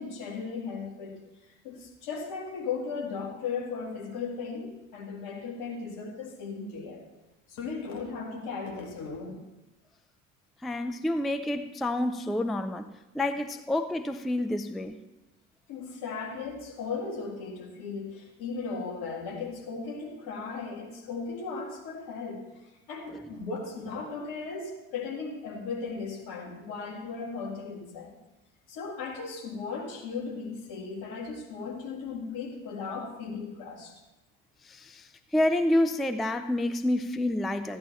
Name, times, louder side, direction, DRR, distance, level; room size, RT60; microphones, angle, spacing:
voice 1, 0.0-7.0 7.5-9.4 15.7-28.2 28.7-34.0, left 4 dB, 60° left, 1 dB, 2.2 m, -37 dB
voice 2, 10.6-12.9 13.1-15.0 23.1-23.3 34.6-37.8, left 1 dB, ahead, 9 dB, 0.4 m, -28 dB
13.5 x 10.0 x 4.2 m, 1.0 s
figure-of-eight pair, 55°, 42 cm